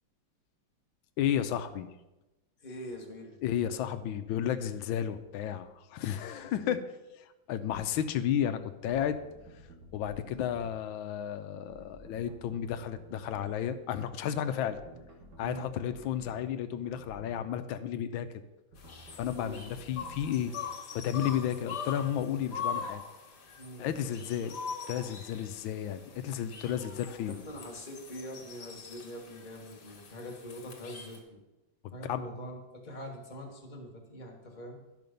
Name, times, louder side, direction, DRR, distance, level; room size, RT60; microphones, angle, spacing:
voice 1, 1.2-1.9 3.4-6.8 7.5-9.2 9.9-14.8 15.4-18.3 19.1-20.5 20.9-23.0 23.8-24.6 24.9-27.4 32.0-32.2, left 9 dB, 90° left, 9 dB, 1.4 m, -32 dB
voice 2, 2.6-3.4 6.4-6.8 14.9-15.1 15.4-15.7 19.3-19.6 23.6-23.9 27.3-31.4 31.9-34.8, equal, 25° left, 1 dB, 1.4 m, -44 dB
sound 1, 7.7-7.9 8.9-10.8 11.7-13.6 14.5-16.4 16.8-17.4 18.7-20.6, right 1 dB, 60° right, 2.2 m, -53 dB
sound 2, 18.8-31.2, left 6 dB, 60° left, 2.0 m, -42 dB
11.0 x 5.8 x 5.2 m, 1.0 s
omnidirectional pair, 2.1 m